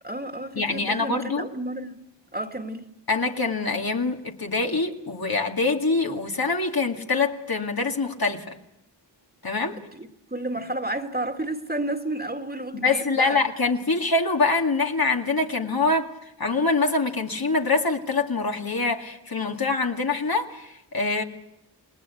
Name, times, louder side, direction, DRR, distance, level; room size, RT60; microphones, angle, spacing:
voice 1, 0.0-2.0 2.3-2.9 9.7-13.4, right 1 dB, 20° right, 2.1 m, -31 dB
voice 2, 0.5-1.5 3.1-8.6 9.4-9.8 12.7-16.1 16.4-21.2, left 3 dB, 55° left, 2.3 m, -24 dB
28.5 x 19.5 x 8.5 m
wide cardioid pair, 60°, 43 cm